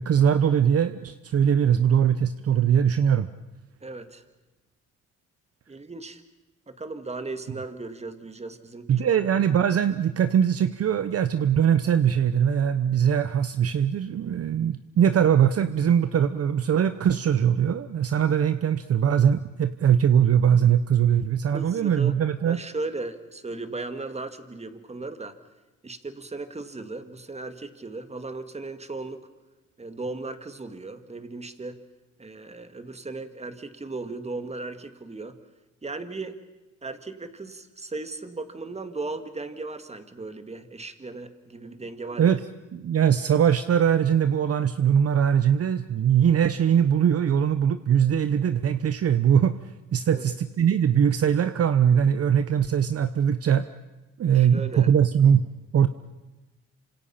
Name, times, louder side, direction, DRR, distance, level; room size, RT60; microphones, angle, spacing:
voice 1, 0.0-3.3 8.9-22.6 42.2-42.4 42.7-49.6 49.9-53.7 54.2-55.4 55.7-55.9, right 8 dB, 50° right, 11 dB, 0.9 m, -21 dB
voice 2, 3.8-4.2 5.7-6.2 6.7-8.9 21.5-22.2 22.5-25.4 25.8-29.2 29.8-31.8 32.2-35.4 35.8-36.4 36.8-42.4 50.1-50.3 54.3-54.9, right 3 dB, 20° right, 9 dB, 2.0 m, -36 dB
27.5 x 26.0 x 5.8 m, 1.1 s
cardioid pair, 90°, 30 cm